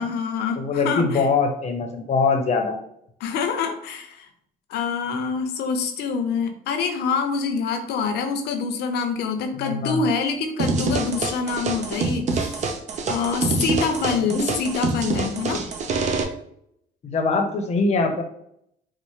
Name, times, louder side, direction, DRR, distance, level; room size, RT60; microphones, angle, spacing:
voice 1, 0.0-1.2 3.2-4.3 4.7-12.7 13.1-15.6, left 5 dB, 75° left, 6 dB, 0.6 m, -26 dB
voice 2, 0.6-2.8 9.6-10.0 14.3-14.5 17.0-18.2, left 4 dB, 40° left, 4 dB, 0.7 m, -23 dB
sound 1, 10.6-16.2, right 3 dB, 45° right, 0.6 m, -26 dB
4.1 x 2.1 x 3.1 m, 0.73 s
cardioid pair, 110°, 17 cm